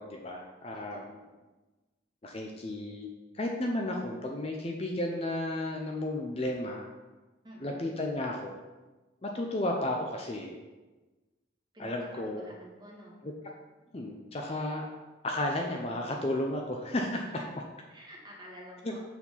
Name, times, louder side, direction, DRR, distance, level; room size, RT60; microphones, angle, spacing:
voice 1, 0.0-1.2 2.2-3.1 3.3-6.9 7.6-8.6 9.2-10.6 11.8-12.5 13.2-13.3 13.9-14.9 15.2-17.4 18.8-18.9, left 1 dB, 30° left, 1 dB, 0.6 m, -33 dB
voice 2, 0.7-1.4 7.4-7.8 11.7-13.2 17.9-19.0, equal, 20° right, -3 dB, 1.6 m, -50 dB
6.9 x 4.4 x 5.6 m, 1.2 s
head